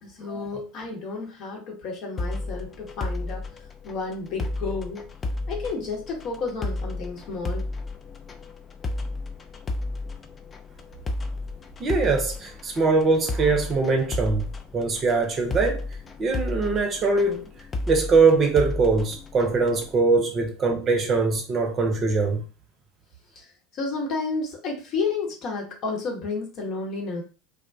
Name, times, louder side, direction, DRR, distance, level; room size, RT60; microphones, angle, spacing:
voice 1, 0.0-5.1 5.5-7.7 20.1-20.2 23.3-27.2, left 4 dB, 50° left, 0.9 m, -31 dB
sound 1, 2.2-19.9, left 2 dB, 25° left, 0.4 m, -33 dB
voice 2, 11.8-14.5 14.7-15.8 16.2-17.5 17.9-22.4, right 4 dB, 35° right, 0.7 m, -22 dB
2.4 x 2.2 x 2.5 m
hypercardioid pair, 75°, 0 cm